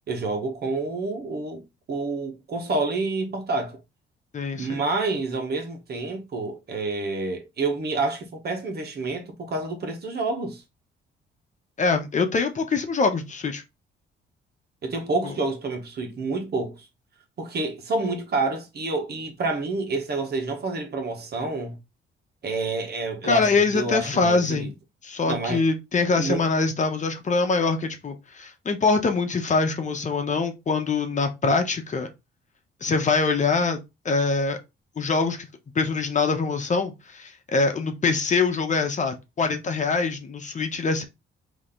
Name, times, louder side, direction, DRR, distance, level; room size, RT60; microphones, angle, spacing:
voice 1, 0.1-1.6 1.9-3.8 4.5-10.6 14.8-16.9 17.4-21.8 22.4-24.7 25.3-25.6 26.2-26.5, right 3 dB, 55° right, 1.5 m, -28 dB
voice 2, 4.3-4.8 11.8-13.6 15.2-15.3 23.2-24.7 25.0-32.1 32.8-33.8 34.0-34.6 35.0-35.5 35.7-41.0, left 4 dB, 40° left, 1.0 m, -24 dB
4.1 x 3.1 x 3.8 m
cardioid pair, 90°, 20 cm